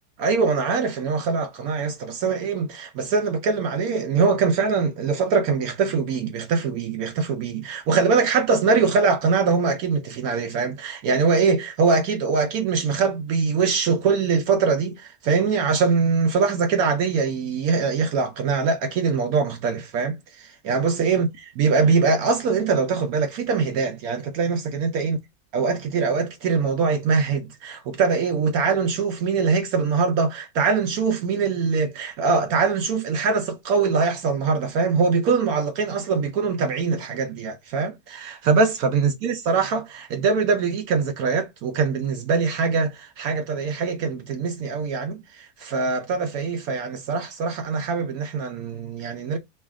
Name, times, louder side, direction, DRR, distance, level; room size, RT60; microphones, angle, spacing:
voice 1, 0.2-21.3 21.6-25.2 25.5-49.4, right 5 dB, 70° right, 1.0 m, -23 dB
3.1 x 2.7 x 3.5 m
omnidirectional pair, 1.7 m